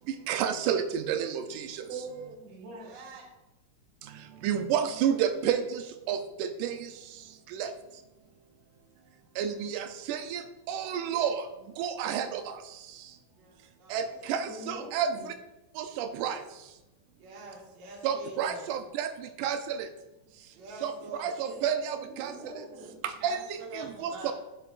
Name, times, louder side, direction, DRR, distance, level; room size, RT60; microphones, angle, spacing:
voice 1, 0.3-1.9 4.4-6.9 7.5-7.7 9.4-11.5 11.8-12.6 13.9-15.3 15.8-16.4 18.0-19.9 20.8-20.9 21.2-22.3 23.0-24.3, right 8 dB, 90° right, 8 dB, 2.1 m, -30 dB
voice 2, 1.9-3.0 14.1-15.3 21.4-23.0, right 3 dB, 60° right, -2 dB, 2.8 m, -44 dB
voice 3, 2.6-3.3 13.4-14.1 17.2-18.7 20.5-21.3 23.2-24.3, right 3 dB, 45° right, -2 dB, 1.8 m, -46 dB
11.0 x 6.8 x 2.5 m, 1.0 s
omnidirectional pair, 3.5 m